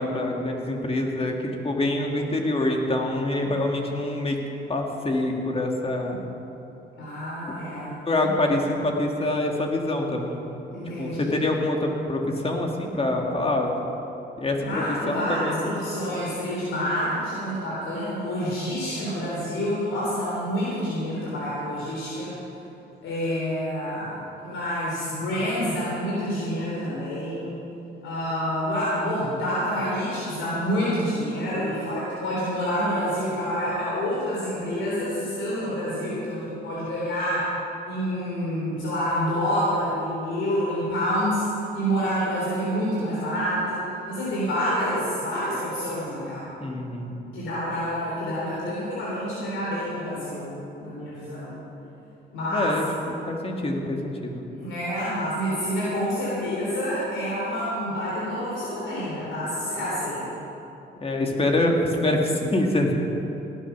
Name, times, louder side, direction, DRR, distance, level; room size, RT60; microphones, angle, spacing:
voice 1, 0.0-1.3 1.6-4.4 4.7-6.3 7.5-7.6 7.9-10.4 11.0-13.7 14.4-15.7 46.6-47.2 52.5-54.4 61.0-62.9, left 1 dB, 30° left, 1 dB, 1.8 m, -25 dB
voice 2, 7.0-8.3 10.7-11.5 14.6-22.3 23.0-24.2 24.4-27.6 28.0-37.5 37.9-41.5 41.7-46.5 47.3-50.5 50.8-51.6 52.3-52.7 54.5-60.3, equal, 80° left, -7 dB, 3.7 m, -28 dB
17.5 x 8.9 x 6.0 m, 2.9 s
cardioid pair, 90°, 20 cm